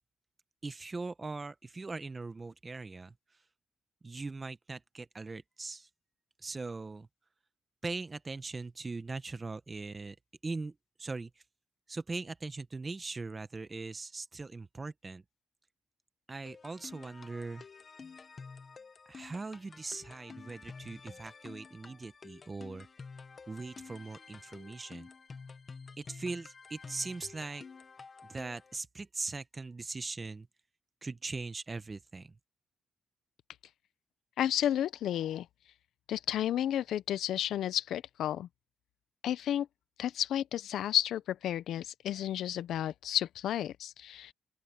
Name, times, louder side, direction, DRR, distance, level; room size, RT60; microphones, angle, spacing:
voice 1, 0.6-3.1 4.0-5.9 6.4-7.1 7.8-10.2 10.4-11.3 11.9-15.2 16.3-17.6 19.1-22.9 23.5-25.1 26.0-27.6 28.3-30.5 31.0-32.4, right 3 dB, 25° right, 1.0 m, -40 dB
sound 1, 16.5-28.8, left 5 dB, 35° left, 1.2 m, -50 dB
voice 2, 34.4-35.5 36.1-38.5 39.2-39.7 40.0-44.3, left 11 dB, 85° left, 0.6 m, -32 dB
open air
cardioid pair, 120°, 0 cm